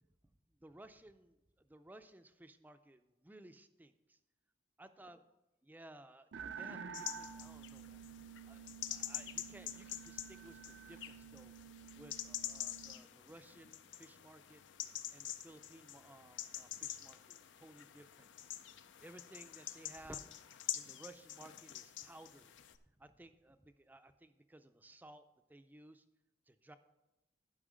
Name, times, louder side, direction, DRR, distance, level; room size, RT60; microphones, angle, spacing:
voice 1, 0.6-4.2 4.8-5.2 5.6-8.0 8.5-11.5 11.9-14.6 15.1-18.3 19.0-20.2 20.7-22.5 23.0-25.2 25.5-26.0 26.5-26.8, right 1 dB, 10° right, 10 dB, 0.4 m, -57 dB
sound 1, 6.3-13.0, right 7 dB, 75° right, 0.5 m, -50 dB
sound 2, 6.9-22.8, left 11 dB, 85° left, 0.5 m, -47 dB
11.0 x 5.6 x 5.0 m, 0.97 s
head